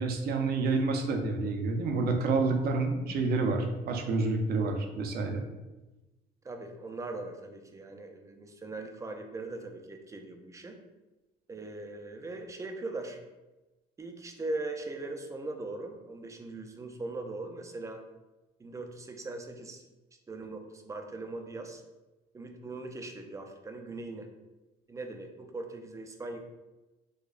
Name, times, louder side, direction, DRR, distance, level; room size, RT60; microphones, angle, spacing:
voice 1, 0.0-5.4, right 3 dB, 65° right, 3 dB, 0.6 m, -28 dB
voice 2, 6.4-10.8 11.5-13.2 14.0-18.0 18.6-19.8 20.3-21.8 22.3-24.3 24.9-26.4, right 2 dB, 20° right, 5 dB, 0.4 m, -40 dB
4.8 x 2.2 x 2.4 m, 1.1 s
cardioid pair, 110°, 17 cm